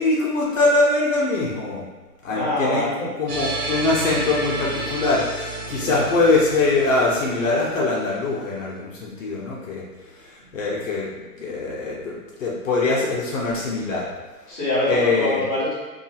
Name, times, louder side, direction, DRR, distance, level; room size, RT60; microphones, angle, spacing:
voice 1, 0.0-1.9 2.2-2.9 3.2-9.8 10.1-14.1 14.9-15.4, left 3 dB, 55° left, -5 dB, 0.6 m, -23 dB
voice 2, 2.3-3.1 5.8-6.1 14.5-15.7, left 1 dB, 15° left, -15 dB, 0.8 m, -24 dB
sound 1, 3.3-8.4, right 2 dB, 90° right, 0.8 m, -31 dB
2.7 x 2.4 x 2.7 m, 1.2 s
hypercardioid pair, 165°, 47 cm